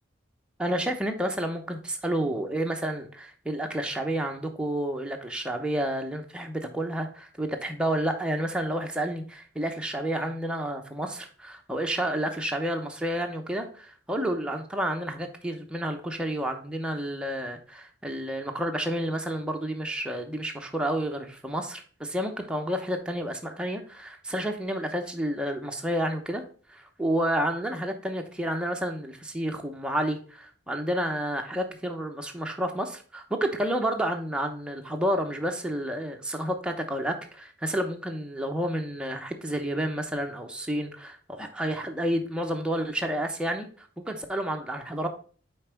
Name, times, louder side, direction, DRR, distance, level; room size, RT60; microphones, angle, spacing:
voice 1, 0.6-26.4 26.7-45.1, right 1 dB, 5° right, 3 dB, 0.8 m, -30 dB
5.6 x 4.4 x 4.5 m, 0.42 s
head